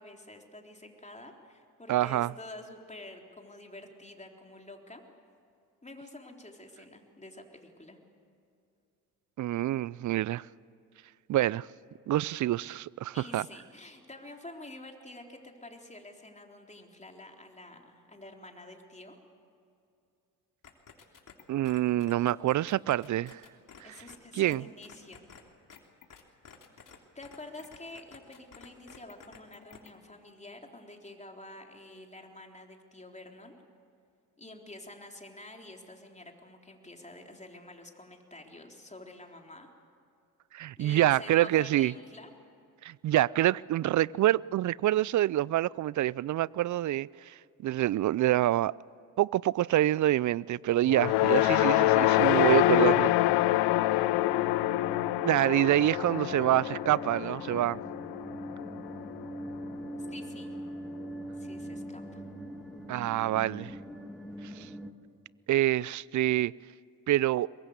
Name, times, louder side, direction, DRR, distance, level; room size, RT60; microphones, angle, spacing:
voice 1, 0.0-5.0 5.8-8.0 13.1-19.2 23.8-25.2 26.9-33.6 34.4-39.7 40.8-42.3 60.1-60.5 61.4-62.2, left 2 dB, 15° left, 3.8 m, -48 dB
voice 2, 1.9-2.3 9.4-10.5 11.3-11.7 12.1-13.5 21.5-23.4 24.3-24.6 40.5-41.9 42.8-48.7 49.2-53.1 55.2-57.8 62.9-63.8 64.4-64.7 65.5-66.5 67.1-67.5, right 14 dB, 45° right, 0.5 m, -26 dB
sound 1, 20.6-24.2 24.5-24.6 24.8-25.4 25.7-27.0 27.2-29.9, left 7 dB, 50° left, 3.2 m, -51 dB
sound 2, 50.9-59.3, left 16 dB, 70° left, 0.7 m, -26 dB
sound 3, 51.1-64.9, equal, ahead, 2.6 m, -43 dB
22.5 x 21.0 x 8.1 m
hypercardioid pair, 50°, 42 cm